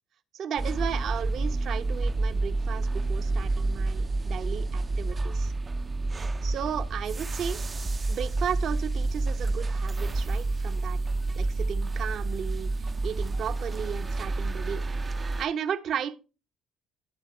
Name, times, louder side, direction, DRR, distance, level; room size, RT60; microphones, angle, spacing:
voice 1, 0.3-5.5 6.4-7.6 8.1-11.0 11.4-14.8 15.4-16.2, right 8 dB, 60° right, 0.9 m, -34 dB
sound 1, 0.6-15.5, right 2 dB, 30° right, 0.6 m, -29 dB
11.5 x 5.7 x 4.4 m
supercardioid pair, 70°, 0 cm